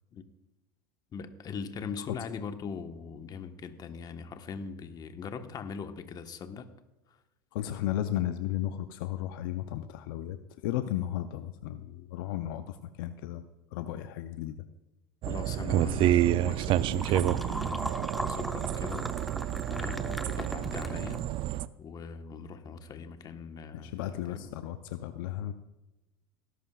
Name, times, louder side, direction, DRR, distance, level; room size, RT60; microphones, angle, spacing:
voice 1, 1.1-6.7 7.1-7.2 15.2-19.1 19.7-21.2 21.8-24.5, left 6 dB, 35° left, 7 dB, 1.2 m, -41 dB
voice 2, 7.5-13.4 13.7-14.6 23.7-25.5, left 12 dB, 70° left, 10 dB, 0.6 m, -34 dB
sound 1, 15.2-21.7, right 13 dB, 50° right, 0.5 m, -29 dB
sound 2, 16.3-21.6, equal, ahead, 0.7 m, -39 dB
18.5 x 11.5 x 2.4 m, 0.99 s
hypercardioid pair, 95°, 12 cm